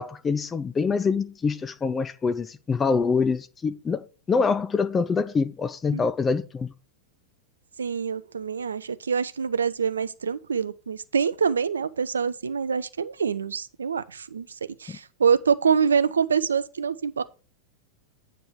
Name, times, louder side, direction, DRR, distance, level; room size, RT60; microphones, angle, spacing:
voice 1, 0.0-6.7 14.9-15.0, left 5 dB, 20° left, 0.4 m, -25 dB
voice 2, 7.8-14.5 14.8-17.2, right 6 dB, 70° right, 0.4 m, -25 dB
8.7 x 3.2 x 6.0 m
figure-of-eight pair, 90°, 0 cm